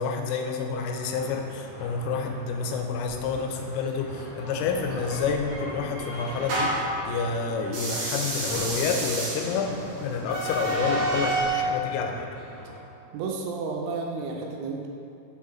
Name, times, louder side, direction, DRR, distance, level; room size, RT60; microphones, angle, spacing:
voice 1, 0.0-12.3, left 5 dB, 90° left, 3 dB, 3.1 m, -29 dB
sound 1, 0.7-12.8, equal, 75° left, 1.5 m, -41 dB
sound 2, 5.1-7.0 7.7-11.6, right 2 dB, 65° right, 2.0 m, -30 dB
voice 2, 13.1-14.9, right 4 dB, 85° right, 0 dB, 2.9 m, -32 dB
6.9 x 3.7 x 4.3 m, 2.6 s
omnidirectional pair, 5.7 m